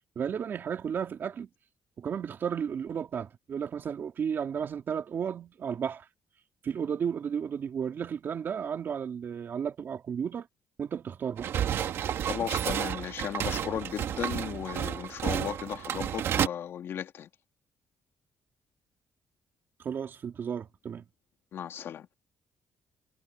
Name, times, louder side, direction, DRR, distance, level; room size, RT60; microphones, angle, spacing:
voice 1, 0.1-1.5 2.0-6.1 6.6-10.5 10.8-11.5 19.8-21.0, right 7 dB, 55° right, 2.9 m, -33 dB
sound 1, 11.4-16.5, right 9 dB, 70° right, 1.9 m, -31 dB
voice 2, 12.3-17.3 21.5-22.1, left 9 dB, 65° left, 2.4 m, -36 dB
cardioid pair, 95°, 4 cm